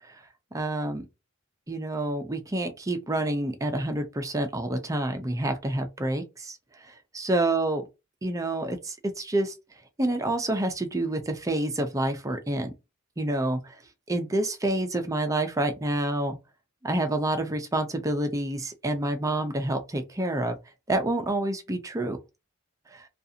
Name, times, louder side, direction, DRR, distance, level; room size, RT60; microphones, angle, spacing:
voice 1, 0.5-1.0 1.7-7.8 8.2-9.5 10.0-12.7 13.2-13.8 14.1-16.4 16.8-20.6 20.9-22.2 22.9-23.1, right 1 dB, 15° right, 0.5 m, -28 dB
2.6 x 2.4 x 2.7 m
head